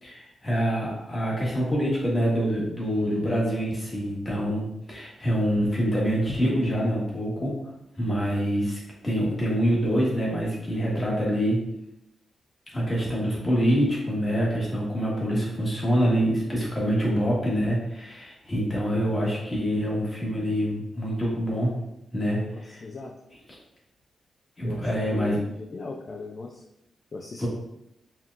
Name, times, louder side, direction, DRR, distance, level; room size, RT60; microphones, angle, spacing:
voice 1, 0.0-7.5 8.0-11.6 12.7-21.7 22.1-22.8 24.6-25.4 27.4-27.5, equal, 20° left, -5 dB, 1.3 m, -26 dB
voice 2, 22.4-23.1 24.6-26.6 27.1-27.5, left 3 dB, 40° left, 1 dB, 0.4 m, -38 dB
4.4 x 3.6 x 2.5 m, 0.82 s
wide cardioid pair, 145°, 0 cm